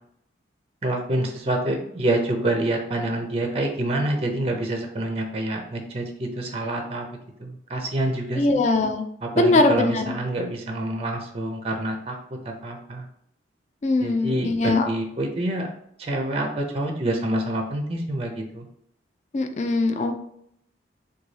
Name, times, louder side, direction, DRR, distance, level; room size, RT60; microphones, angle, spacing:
voice 1, 0.8-7.1 7.4-8.5 9.2-13.0 14.0-15.7 16.0-18.6, right 1 dB, 30° right, 3 dB, 0.5 m, -27 dB
voice 2, 8.4-9.0 9.4-10.1 13.8-14.9 19.3-20.2, left 2 dB, 40° left, 6 dB, 0.3 m, -21 dB
3.9 x 2.3 x 3.2 m, 0.71 s
head